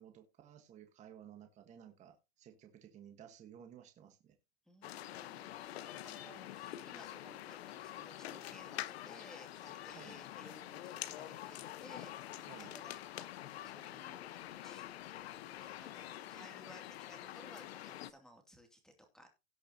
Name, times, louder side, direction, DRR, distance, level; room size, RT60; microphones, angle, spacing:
voice 1, 0.0-4.3 9.9-10.2 12.5-12.7, right 9 dB, 20° right, 6 dB, 1.4 m, -56 dB
voice 2, 4.7-14.8 15.6-19.3, equal, ahead, 4 dB, 2.6 m, -59 dB
sound 1, 4.8-18.1, left 13 dB, 75° left, 1.1 m, -46 dB
17.5 x 6.7 x 2.8 m, 0.25 s
supercardioid pair, 155°, 31 cm